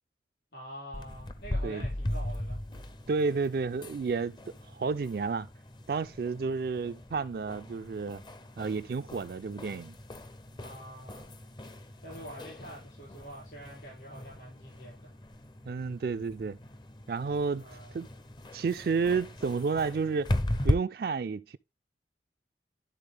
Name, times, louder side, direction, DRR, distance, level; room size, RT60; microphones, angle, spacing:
voice 1, 0.5-2.6 10.6-11.2 12.0-15.1 17.6-18.1, right 1 dB, 70° left, 5.0 m, -46 dB
sound 1, 0.9-20.7, left 1 dB, 25° left, 0.5 m, -38 dB
voice 2, 3.1-4.4 4.7-5.5 5.9-8.2 8.6-10.0 15.7-16.6 17.1-17.7 17.9-18.1 18.5-20.4 20.6-21.6, right 4 dB, 55° right, 0.3 m, -31 dB
11.5 x 3.9 x 3.4 m
head